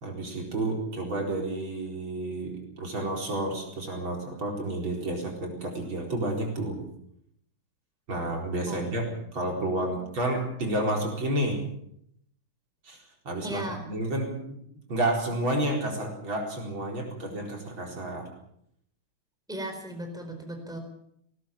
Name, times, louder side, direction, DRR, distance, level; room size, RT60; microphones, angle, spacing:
voice 1, 0.0-6.8 8.1-11.6 12.8-14.3 14.9-18.3, right 1 dB, 65° right, 1 dB, 5.1 m, -30 dB
voice 2, 9.8-10.2 13.4-13.9 19.5-20.8, right 1 dB, ahead, 4 dB, 4.3 m, -37 dB
19.5 x 18.5 x 7.3 m, 0.72 s
omnidirectional pair, 2.4 m